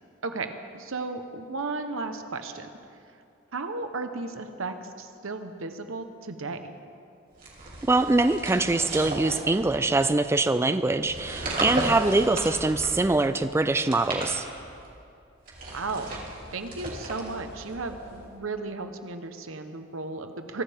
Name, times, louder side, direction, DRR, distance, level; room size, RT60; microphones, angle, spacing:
voice 1, 0.2-2.7 3.5-6.7 15.7-16.2 16.5-20.6, right 3 dB, 80° right, 8 dB, 1.0 m, -34 dB
sound 1, 7.4-10.1 11.0-13.2 13.7-14.9 15.4-18.3, right 2 dB, 45° right, 3.2 m, -35 dB
voice 2, 7.8-14.5, right 2 dB, 15° right, 10 dB, 0.3 m, -23 dB
23.5 x 14.5 x 3.6 m, 2.6 s
head